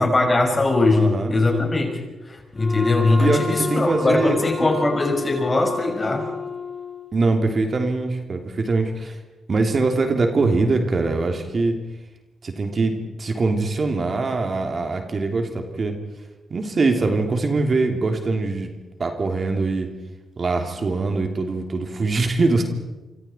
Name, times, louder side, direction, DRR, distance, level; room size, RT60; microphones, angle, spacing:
voice 1, 0.0-6.3, left 2 dB, 30° left, 3 dB, 5.8 m, -21 dB
voice 2, 0.9-1.3 3.2-3.4 3.7-5.0 7.1-9.2 9.5-11.7 12.4-16.0 16.5-18.7 19.0-19.9 20.4-22.6, right 3 dB, 45° right, 4 dB, 3.1 m, -23 dB
Wind instrument woodwind instrument, 2.5-7.3, left 4 dB, 10° left, 6.1 m, -30 dB
26.5 x 25.0 x 4.6 m, 1.1 s
supercardioid pair, 55°, 0 cm